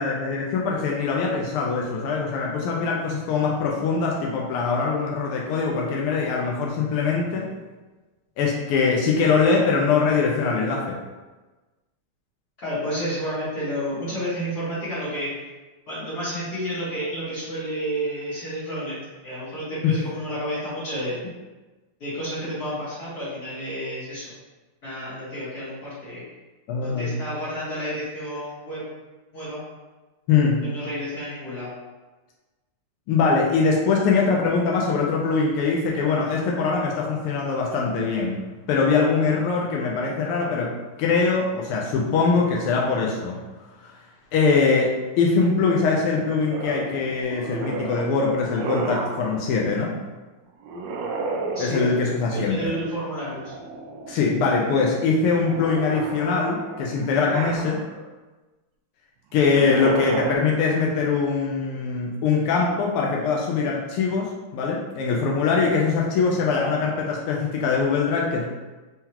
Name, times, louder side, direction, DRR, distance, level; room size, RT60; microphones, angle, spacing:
voice 1, 0.0-7.5 8.4-11.0 19.8-19.9 26.7-27.2 30.3-30.6 33.1-38.4 38.7-40.7 41.0-43.4 43.8-43.9 44.3-49.9 51.6-52.7 54.1-57.8 59.3-68.5, left 4 dB, 85° left, -2 dB, 1.5 m, -22 dB
voice 2, 12.6-15.3 15.9-21.2 22.0-24.3 24.8-26.2 26.8-28.8 29.3-29.6 30.6-31.7 51.5-53.5, equal, 45° left, -11 dB, 1.8 m, -30 dB
sound 1, 46.5-49.3 50.6-52.2 53.1-54.2 54.6-58.1 59.4-60.4, right 3 dB, 75° right, 1.1 m, -32 dB
4.4 x 3.8 x 2.8 m, 1.2 s
omnidirectional pair, 2.4 m